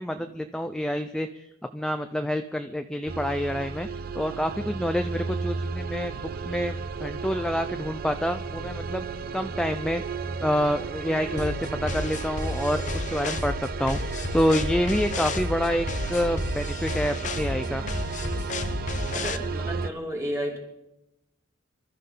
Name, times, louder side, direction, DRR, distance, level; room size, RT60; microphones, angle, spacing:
voice 1, 0.0-1.4 1.7-3.9 4.1-9.0 9.3-10.0 10.4-14.0 14.3-17.8, equal, 5° left, 7 dB, 0.5 m, -27 dB
sound 1, 3.1-19.9, right 4 dB, 45° right, 0.6 m, -33 dB
sound 2, 11.4-19.4, left 3 dB, 40° left, 0.8 m, -32 dB
voice 2, 19.1-20.6, equal, 15° right, -1 dB, 2.8 m, -32 dB
26.5 x 13.0 x 3.9 m, 0.88 s
head